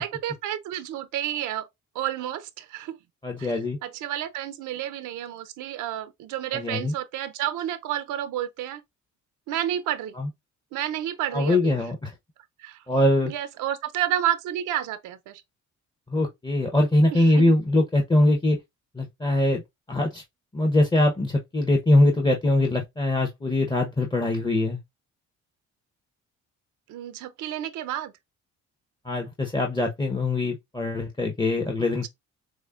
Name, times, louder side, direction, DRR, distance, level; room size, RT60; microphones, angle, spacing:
voice 1, 0.0-1.7 1.9-3.0 3.4-3.5 3.8-8.8 9.5-10.1 10.7-11.7 12.6-12.8 13.3-15.4 17.1-17.5 26.9-28.1, right 12 dB, 90° right, 0.6 m, -30 dB
voice 2, 3.2-3.8 6.5-6.9 10.2-10.3 11.3-12.1 12.9-13.3 16.1-18.6 18.9-19.6 19.9-20.2 20.5-24.8 29.0-32.1, left 1 dB, 15° left, 0.8 m, -22 dB
6.3 x 2.1 x 2.4 m
cardioid pair, 90°, 30 cm